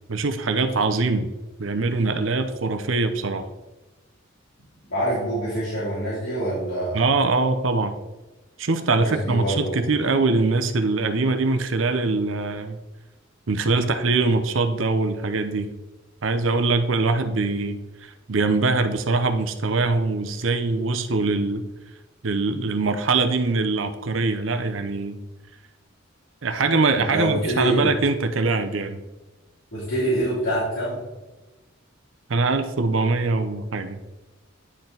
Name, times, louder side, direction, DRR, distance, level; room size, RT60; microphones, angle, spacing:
voice 1, 0.1-1.3 1.6-3.4 6.9-8.0 8.6-12.8 13.5-15.7 16.2-21.6 22.2-25.2 26.4-29.0 32.3-34.0, right 3 dB, 70° right, 9 dB, 0.7 m, -23 dB
voice 2, 4.9-7.0 8.9-9.8 26.9-27.9 29.7-31.0, right 1 dB, 65° left, -10 dB, 2.8 m, -25 dB
10.0 x 4.4 x 3.9 m, 1.1 s
head